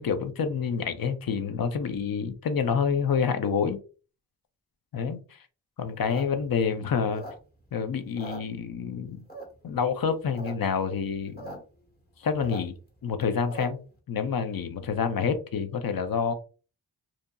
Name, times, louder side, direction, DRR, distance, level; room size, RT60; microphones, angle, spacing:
voice 1, 0.0-3.8 4.9-5.2 5.8-7.2 7.7-9.3 9.6-11.6 12.2-12.7 13.0-13.8 14.1-16.3, left 6 dB, 55° left, 0.5 m, -28 dB
sound 1, 5.9-7.7 8.0-8.9 9.3-9.7 10.1-10.5 10.8-10.9 11.0-11.6 11.9-13.9, right 1 dB, 25° left, 1.1 m, -41 dB
2.8 x 2.4 x 2.2 m
wide cardioid pair, 70°, 41 cm